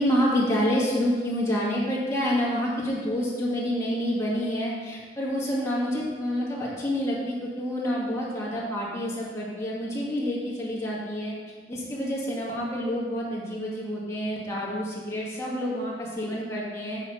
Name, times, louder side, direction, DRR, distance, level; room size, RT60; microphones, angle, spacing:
voice 1, 0.0-11.3 11.7-17.0, equal, 15° left, -6 dB, 1.8 m, -28 dB
8.3 x 5.0 x 5.7 m, 1.5 s
head